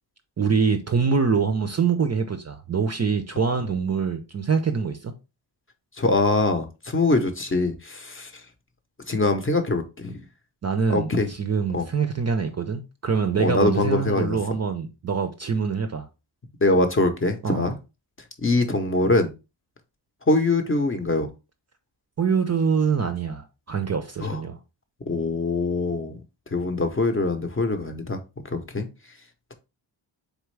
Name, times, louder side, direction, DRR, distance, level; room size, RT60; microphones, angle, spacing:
voice 1, 0.4-5.1 10.6-16.1 17.4-17.7 22.2-24.6, right 5 dB, 35° right, 0.5 m, -24 dB
voice 2, 6.0-8.3 9.1-10.2 10.9-11.3 11.7-11.8 13.4-14.4 16.6-17.7 18.4-19.3 20.3-21.3 24.2-24.4 25.1-26.2 26.5-28.2 28.5-28.9, left 2 dB, 25° left, 0.6 m, -23 dB
4.2 x 3.5 x 3.2 m
wide cardioid pair, 140°, 48 cm